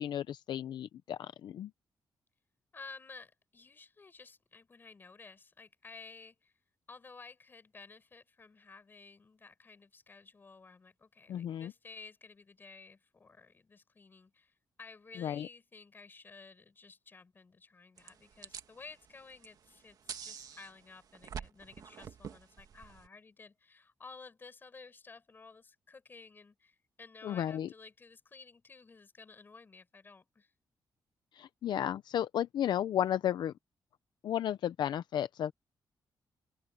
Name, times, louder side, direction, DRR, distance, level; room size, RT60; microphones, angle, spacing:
voice 1, 0.0-1.7 11.3-11.7 15.2-15.5 27.2-27.7 31.3-33.5 34.2-35.5, left 10 dB, 75° left, 0.6 m, -33 dB
voice 2, 2.7-6.5 6.9-30.5, left 4 dB, 25° left, 5.4 m, -54 dB
sound 1, 18.0-23.1, right 7 dB, 55° right, 1.7 m, -47 dB
open air
wide cardioid pair, 170°, 8 cm